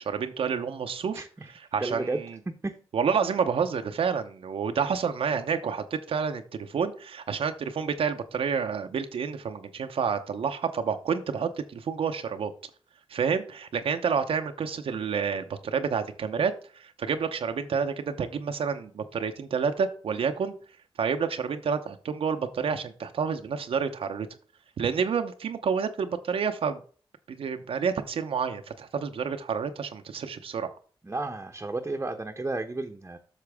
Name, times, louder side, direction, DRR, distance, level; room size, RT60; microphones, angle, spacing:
voice 1, 0.0-1.2 1.7-2.4 2.9-12.5 13.1-20.5 21.0-24.3 24.8-26.8 27.3-30.7, right 6 dB, 80° right, 6 dB, 0.7 m, -29 dB
voice 2, 1.1-1.5 1.8-2.2 2.6-2.7 31.0-33.2, right 2 dB, 25° right, 5 dB, 0.8 m, -32 dB
8.3 x 5.9 x 3.5 m, 0.41 s
cardioid pair, 65°, 10 cm